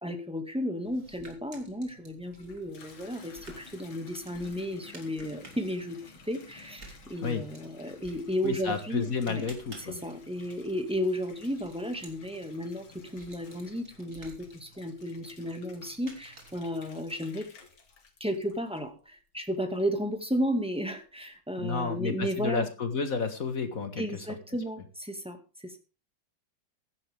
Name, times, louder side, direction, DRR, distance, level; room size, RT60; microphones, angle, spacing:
voice 1, 0.0-6.0 6.2-9.4 9.8-17.5 18.2-22.7 24.0-25.8, equal, 5° right, 5 dB, 1.8 m, -33 dB
sound 1, 0.8-16.9, right 3 dB, 35° right, 3.3 m, -54 dB
Water tap faucet / Bathtub (filling or washing), 2.1-19.1 19.5-20.1, left 5 dB, 70° left, 2.8 m, -55 dB
voice 2, 8.4-10.0 21.6-24.0, left 5 dB, 45° left, 8 dB, 1.8 m, -31 dB
15.5 x 11.5 x 3.6 m, 0.31 s
omnidirectional pair, 2.3 m